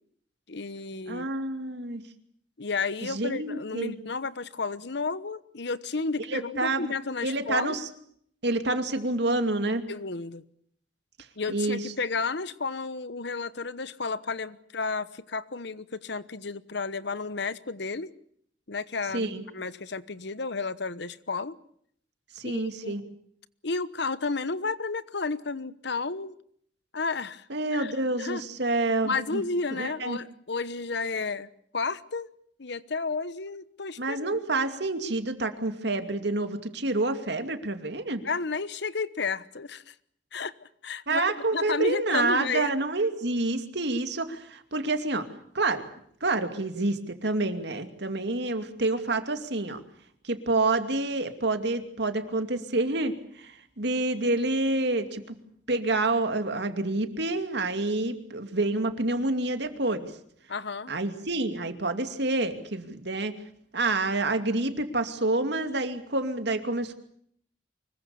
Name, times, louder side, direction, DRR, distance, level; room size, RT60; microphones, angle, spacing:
voice 1, 0.5-1.3 2.6-7.8 9.9-10.4 11.4-18.1 18.7-21.6 22.4-23.1 23.6-26.4 26.9-27.5 27.7-27.9 28.2-28.4 29.0-31.5 31.7-32.3 32.6-34.4 38.2-39.9 40.3-40.5 40.8-41.2 41.5-42.7 60.5-60.9, left 4 dB, 65° left, 1.1 m, -32 dB
voice 2, 1.1-2.0 3.0-3.9 6.3-6.9 7.2-7.9 8.4-9.9 11.5-11.8 19.1-19.5 22.4-23.0 27.5-29.4 29.7-30.2 34.0-38.3 41.1-45.3 45.5-45.8 46.2-49.8 50.2-55.2 55.7-60.1 60.9-63.3 63.7-66.9, right 2 dB, 65° right, 2.6 m, -28 dB
25.0 x 22.0 x 7.1 m
head